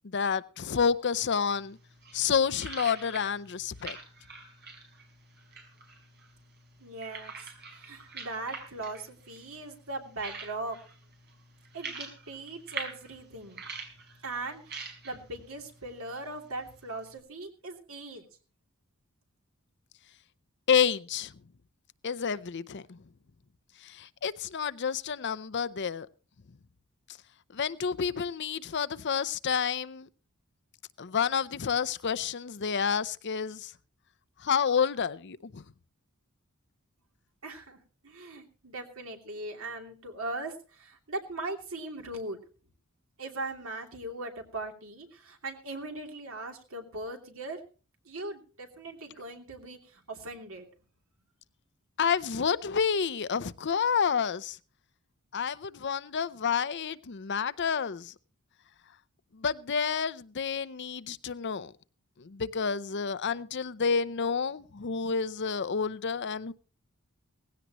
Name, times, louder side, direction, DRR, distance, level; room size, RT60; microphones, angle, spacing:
voice 1, 0.0-1.8 2.1-4.0 20.7-21.3 22.0-23.0 23.8-26.1 27.5-30.1 31.0-33.7 34.4-35.6 52.0-54.6 55.3-58.1 59.3-61.7 62.2-66.5, left 6 dB, 55° left, 0.6 m, -29 dB
sound 1, 1.5-17.2, right 4 dB, 50° right, 4.8 m, -46 dB
voice 2, 6.8-10.8 11.7-13.6 14.2-18.2 37.4-37.8 38.0-42.4 43.2-47.6 48.0-50.7, right 2 dB, 65° right, 2.9 m, -39 dB
18.0 x 16.5 x 3.0 m
head